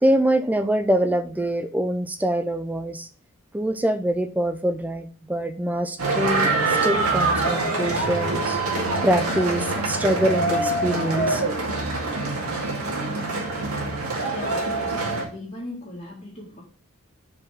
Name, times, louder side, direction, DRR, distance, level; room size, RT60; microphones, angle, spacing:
voice 1, 0.0-3.1 3.5-8.6 9.0-11.4, right 1 dB, 5° right, 0.4 m, -24 dB
sound 1, 6.0-15.2, right 2 dB, 90° right, 2.1 m, -25 dB
voice 2, 14.3-16.6, left 1 dB, 30° left, 2.1 m, -38 dB
4.9 x 4.9 x 6.1 m
head